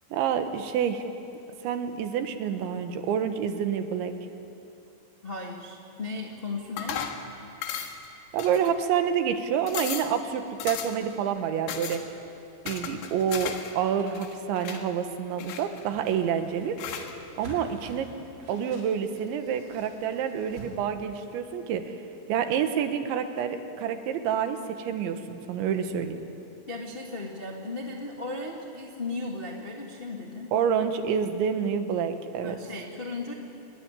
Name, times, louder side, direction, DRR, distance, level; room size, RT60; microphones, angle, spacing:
voice 1, 0.1-1.0 1.6-4.1 8.3-12.0 12.7-16.8 17.4-18.1 18.5-22.0 22.3-26.2 30.5-32.6, right 8 dB, 80° right, 7 dB, 3.7 m, -28 dB
voice 2, 5.2-7.0 26.7-30.5 32.4-33.3, left 3 dB, 50° left, 0 dB, 0.6 m, -36 dB
sound 1, 6.8-7.2 7.6-8.1 8.4-9.0 9.3-9.4 9.7-10.1 10.6-11.1 11.7-12.0 12.7-13.7 14.0-14.8 15.4-16.1 16.8-17.1, left 8 dB, 70° left, 3.7 m, -35 dB
Whoosh swoosh swish, 15.7-20.7, right 1 dB, 25° right, 6.0 m, -47 dB
26.0 x 22.0 x 9.9 m, 2.8 s
omnidirectional pair, 5.3 m